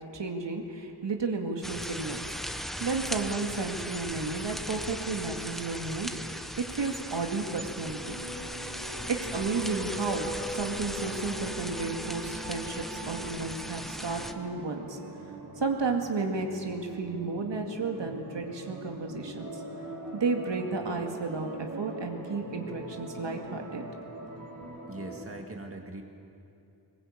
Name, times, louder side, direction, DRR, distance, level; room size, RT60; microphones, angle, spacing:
voice 1, 0.1-8.2 9.1-15.0 15.6-19.6 20.1-23.8, right 3 dB, 70° right, 2 dB, 2.2 m, -33 dB
sound 1, 1.6-14.3, equal, ahead, 0.9 m, -38 dB
sound 2, 7.5-25.2, right 2 dB, 45° right, 3.8 m, -42 dB
voice 2, 24.9-26.0, right 2 dB, 30° right, 2 dB, 2.1 m, -41 dB
21.5 x 20.5 x 8.6 m, 2.7 s
wide cardioid pair, 140°, 45 cm